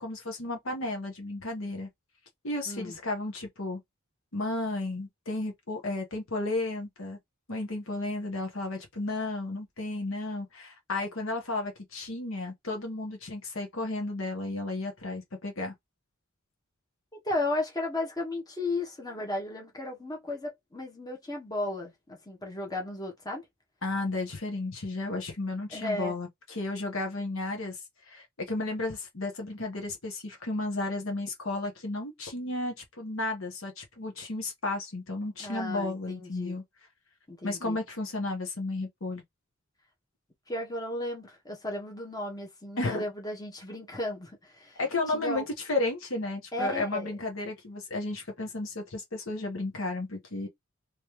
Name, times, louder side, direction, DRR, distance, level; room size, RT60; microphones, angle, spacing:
voice 1, 0.0-1.9 2.4-3.8 4.3-7.2 7.5-15.7 23.8-36.6 37.4-39.2 42.8-43.0 44.8-50.5, left 2 dB, 70° left, 1.3 m, -33 dB
voice 2, 2.7-3.0 17.2-23.4 25.7-26.1 35.4-36.6 37.3-37.8 40.5-44.8 45.1-45.5 46.5-47.1, left 2 dB, 20° left, 1.2 m, -34 dB
3.2 x 3.1 x 3.2 m
head